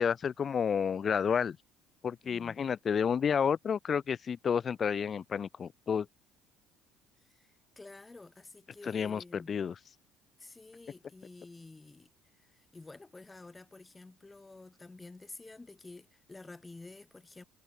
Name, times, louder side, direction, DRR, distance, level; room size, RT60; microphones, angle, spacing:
voice 1, 0.0-1.6 2.0-6.1 8.8-9.8, left 7 dB, 40° left, 0.3 m, -30 dB
voice 2, 2.2-2.6 7.3-9.6 10.4-12.1 12.4-17.4, left 3 dB, 20° left, 1.3 m, -51 dB
figure-of-eight pair, 55°, 0 cm